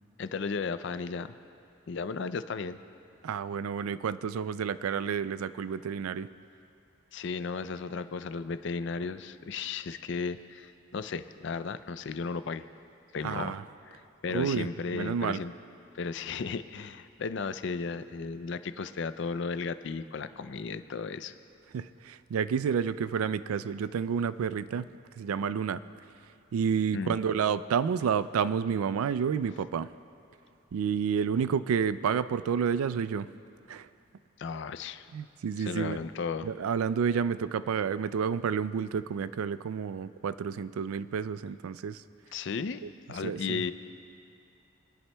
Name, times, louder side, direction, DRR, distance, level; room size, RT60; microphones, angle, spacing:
voice 1, 0.2-1.3 1.9-2.8 7.1-12.6 13.1-15.5 15.9-21.3 26.9-27.2 34.4-35.1 35.6-36.5 42.3-42.8 43.1-43.7, left 5 dB, 55° left, 12 dB, 0.4 m, -35 dB
voice 2, 3.2-6.3 13.2-13.6 14.3-14.7 14.9-15.4 21.7-24.9 25.2-25.8 26.5-29.9 30.7-33.3 33.7-33.9 35.1-36.0 36.4-42.0 43.2-43.6, right 7 dB, 85° right, 15 dB, 0.3 m, -30 dB
30.0 x 11.0 x 2.2 m, 2.7 s
head